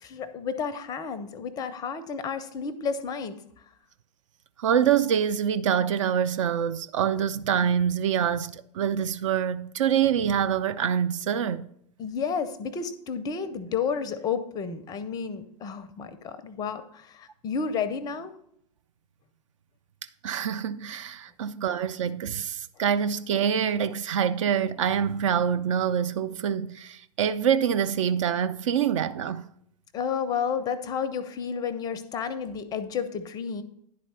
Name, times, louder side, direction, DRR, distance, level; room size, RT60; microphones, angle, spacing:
voice 1, 0.0-3.4 12.0-18.3 29.9-33.6, left 6 dB, 20° left, 0.5 m, -31 dB
voice 2, 4.6-11.6 20.2-29.4, right 8 dB, 50° right, 0.4 m, -25 dB
10.5 x 4.2 x 5.7 m
figure-of-eight pair, 100°, 21 cm